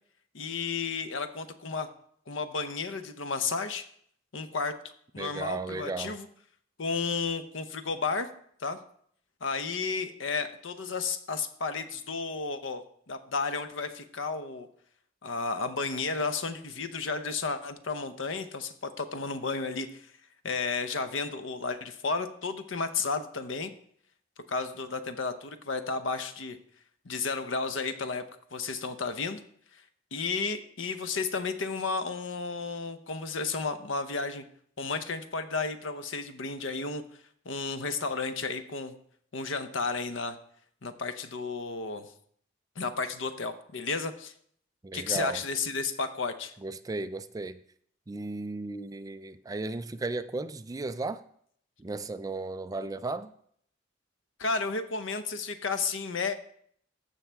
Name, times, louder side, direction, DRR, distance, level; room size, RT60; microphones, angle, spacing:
voice 1, 0.3-1.9 2.3-3.8 4.3-4.7 5.1-6.3 6.8-8.3 8.6-8.8 9.4-14.7 15.2-20.1 20.4-23.7 24.5-26.6 27.0-28.2 28.5-29.4 29.7-29.8 30.1-34.4 34.8-37.0 37.4-38.9 39.3-40.4 40.8-42.1 42.8-44.3 44.9-46.5 54.4-56.4, left 4 dB, 85° left, 0.8 m, -32 dB
voice 2, 5.2-6.1 44.8-45.4 46.6-47.6 48.1-51.2 51.8-53.3, right 3 dB, 20° right, 0.3 m, -35 dB
15.0 x 5.6 x 3.4 m
head